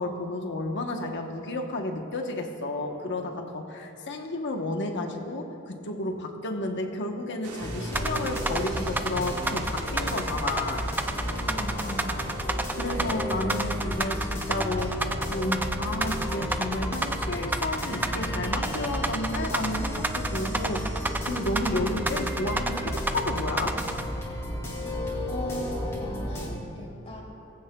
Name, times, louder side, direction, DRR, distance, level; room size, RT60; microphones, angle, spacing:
voice 1, 0.0-10.8 12.7-23.8, left 2 dB, 55° left, 3 dB, 1.1 m, -32 dB
sound 1, 7.4-13.2, right 3 dB, 85° right, 1.2 m, -43 dB
sound 2, 7.6-26.5, equal, 15° left, 2.8 m, -33 dB
sound 3, 7.9-24.0, right 2 dB, 10° right, 0.4 m, -30 dB
voice 2, 11.5-12.1 24.9-27.2, left 1 dB, 30° left, -4 dB, 3.1 m, -38 dB
19.0 x 15.5 x 2.3 m, 2.8 s
head